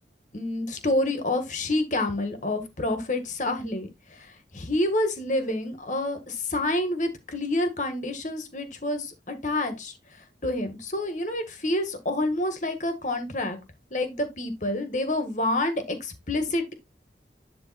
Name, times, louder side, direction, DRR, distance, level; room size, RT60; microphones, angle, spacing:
voice 1, 0.3-9.9 10.4-13.6 13.9-16.7, left 1 dB, 45° left, 1.8 m, -28 dB
10.5 x 3.6 x 4.2 m
head